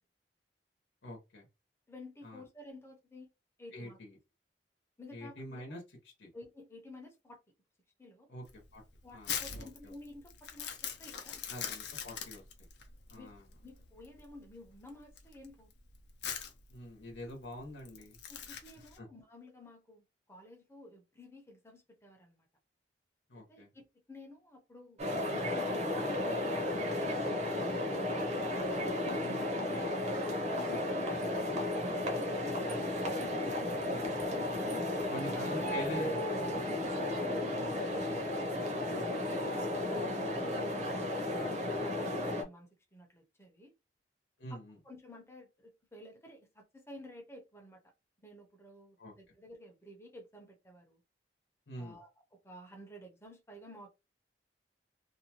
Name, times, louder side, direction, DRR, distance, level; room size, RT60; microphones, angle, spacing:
voice 1, 1.0-1.5 2.2-2.4 3.7-4.2 5.1-5.8 6.2-6.3 8.3-8.4 8.7-8.8 9.1-9.9 11.5-12.7 13.1-13.4 16.7-18.2 19.0-19.1 23.3-23.7 29.2-29.4 35.1-36.6 38.9-39.5 41.4-42.0 44.4-44.8 49.0-49.1 51.7-52.0, left 1 dB, 85° left, 0.9 m, -46 dB
voice 2, 1.9-3.3 3.6-4.0 5.0-5.6 6.3-7.4 8.0-8.3 9.0-11.4 13.1-13.3 13.6-15.7 18.3-22.5 23.3-28.3 29.0-30.1 30.4-33.1 35.2-35.4 36.9-38.3 39.1-41.1 41.7-43.7 44.5-44.6 44.8-47.8 48.2-51.0 51.8-52.1 52.4-53.9, left 1 dB, 15° left, 0.7 m, -52 dB
Crumpling crinkling, 8.4-19.0, left 8 dB, 65° left, 0.6 m, -43 dB
sound 1, 25.0-42.4, left 1 dB, 40° right, 0.7 m, -34 dB
2.6 x 2.2 x 2.8 m
head